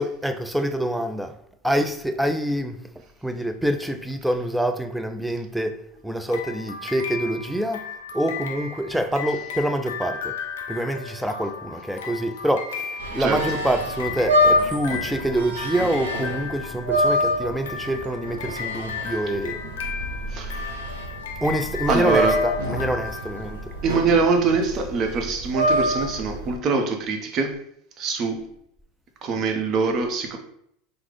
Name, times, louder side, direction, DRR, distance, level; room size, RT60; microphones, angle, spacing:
voice 1, 0.0-1.4 1.6-2.8 3.2-7.9 8.1-10.4 10.7-19.6 21.4-23.7, right 1 dB, ahead, 0.3 m, -26 dB
sound 1, 6.3-24.0, left 6 dB, 85° left, 0.4 m, -35 dB
sound 2, 13.0-26.5, equal, 90° right, 0.6 m, -26 dB
voice 2, 20.3-20.8 21.9-22.4 23.8-27.5 28.0-28.4 29.2-30.4, right 4 dB, 45° right, 0.6 m, -23 dB
3.5 x 2.0 x 3.3 m
hypercardioid pair, 95°, 0 cm